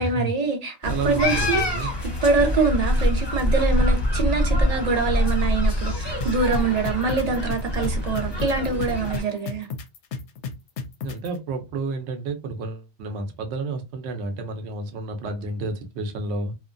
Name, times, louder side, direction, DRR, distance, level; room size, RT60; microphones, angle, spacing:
voice 1, 0.0-1.7 2.0-9.7, right 4 dB, 45° right, 0.6 m, -24 dB
sound 1, 0.8-9.2, left 1 dB, 30° left, 0.6 m, -24 dB
voice 2, 0.8-1.9 11.0-16.5, right 3 dB, 80° right, 0.9 m, -30 dB
sound 2, 6.2-11.3, left 5 dB, 90° left, 0.9 m, -32 dB
2.8 x 2.2 x 2.5 m
omnidirectional pair, 1.1 m